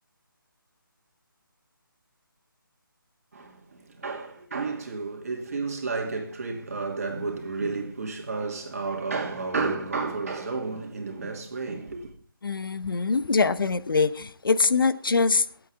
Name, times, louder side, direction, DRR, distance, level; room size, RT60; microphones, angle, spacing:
voice 1, 3.3-12.1, right 4 dB, 40° right, 2.7 m, -31 dB
voice 2, 12.4-15.4, left 4 dB, 70° left, 1.0 m, -23 dB
25.0 x 8.4 x 3.5 m
hypercardioid pair, 175°, 12 cm